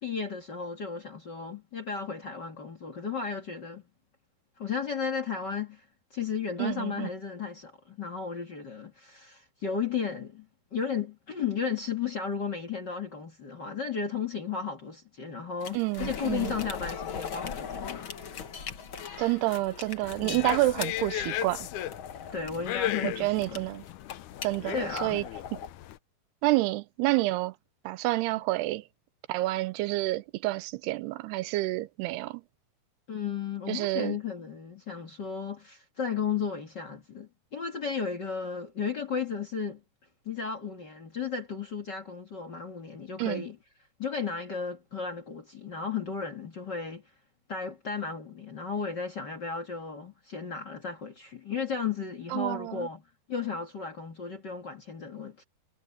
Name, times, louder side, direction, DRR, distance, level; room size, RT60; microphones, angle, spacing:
voice 1, 0.0-3.8 4.6-5.8 6.1-10.5 10.7-18.1 20.2-20.5 22.3-23.6 24.7-25.2 33.1-39.8 40.2-43.6 44.0-47.0 47.5-53.0 53.3-55.4, left 6 dB, 40° left, 1.5 m, -34 dB
voice 2, 6.6-7.1 15.7-16.5 19.2-21.7 23.0-23.8 24.4-25.2 25.5-25.6 26.4-27.5 27.9-28.8 29.3-32.4 33.7-34.2 43.2-43.4 52.3-52.9, right 19 dB, 85° right, 2.7 m, -29 dB
sound 1, 15.6-25.7, left 7 dB, 60° left, 1.3 m, -40 dB
sound 2, 20.0-26.0, left 13 dB, 85° left, 1.7 m, -36 dB
omnidirectional pair, 4.7 m